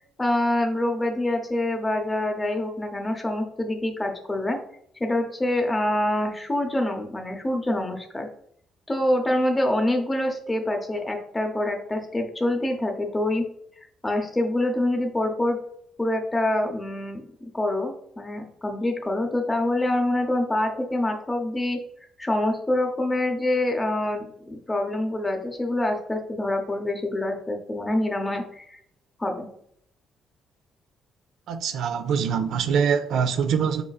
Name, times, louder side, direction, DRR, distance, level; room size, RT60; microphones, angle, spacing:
voice 1, 0.0-4.6 5.0-8.3 8.9-13.4 14.0-15.6 16.0-17.2 17.5-21.8 22.2-28.8 29.2-29.5, left 1 dB, 15° left, 0.7 m, -26 dB
voice 2, 31.5-33.8, right 7 dB, 75° right, 0.5 m, -24 dB
5.0 x 3.9 x 2.3 m
cardioid pair, 115°, 0 cm